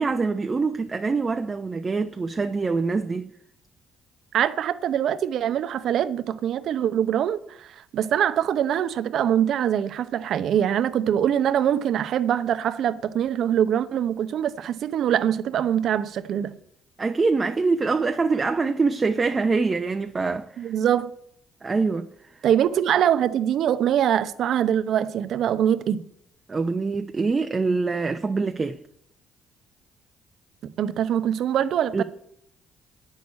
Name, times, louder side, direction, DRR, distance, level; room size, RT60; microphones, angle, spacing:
voice 1, 0.0-3.3 17.0-20.7 21.6-22.1 26.5-28.8 31.9-32.0, right 4 dB, 35° right, 0.8 m, -24 dB
voice 2, 4.3-16.5 20.6-21.1 22.4-26.0 30.6-32.0, right 10 dB, 65° right, 0.8 m, -23 dB
9.2 x 6.5 x 8.4 m
supercardioid pair, 60°, 0 cm